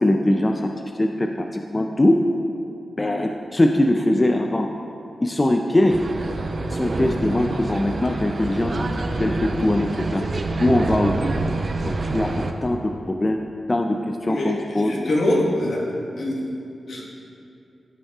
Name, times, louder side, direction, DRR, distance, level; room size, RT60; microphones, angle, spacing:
voice 1, 0.0-0.7 0.9-2.2 3.0-4.7 5.2-6.0 6.7-8.7 9.2-10.2 10.6-11.1 11.8-13.4 13.7-15.1, left 1 dB, 30° left, 3 dB, 0.4 m, -21 dB
sound 1, 5.9-12.5, right 2 dB, 50° right, 0.5 m, -27 dB
voice 2, 14.3-15.8 16.2-16.5 16.9-17.1, left 1 dB, 70° left, -3 dB, 1.4 m, -24 dB
14.5 x 5.2 x 2.4 m, 2.6 s
cardioid pair, 65°, 0 cm